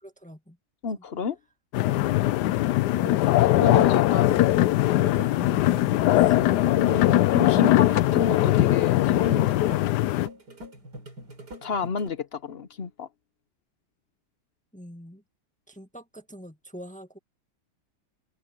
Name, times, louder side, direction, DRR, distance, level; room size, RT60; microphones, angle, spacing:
voice 1, 0.0-0.6 5.9-6.4 14.7-15.2 15.7-17.2, equal, 5° left, 1.7 m, -44 dB
voice 2, 0.8-1.4 3.4-4.4 6.7-9.6 11.6-13.1, left 5 dB, 45° left, 0.9 m, -29 dB
sound 1, 1.7-10.3, left 15 dB, 90° left, 1.2 m, -21 dB
sound 2, 2.9-12.1, right 1 dB, 85° right, 5.4 m, -43 dB
omnidirectional pair, 1.7 m